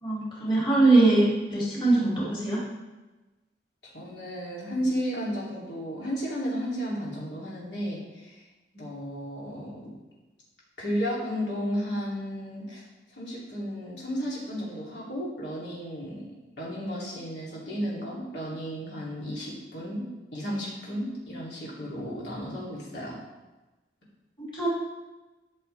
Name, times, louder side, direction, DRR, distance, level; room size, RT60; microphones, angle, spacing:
voice 1, 0.0-2.6 24.4-24.7, right 2 dB, 30° left, -6 dB, 3.0 m, -22 dB
voice 2, 3.8-8.4 8.7-9.9 10.8-16.2 16.6-20.0 20.3-23.1, equal, 80° left, -6 dB, 3.2 m, -33 dB
13.0 x 6.8 x 3.5 m, 1.1 s
head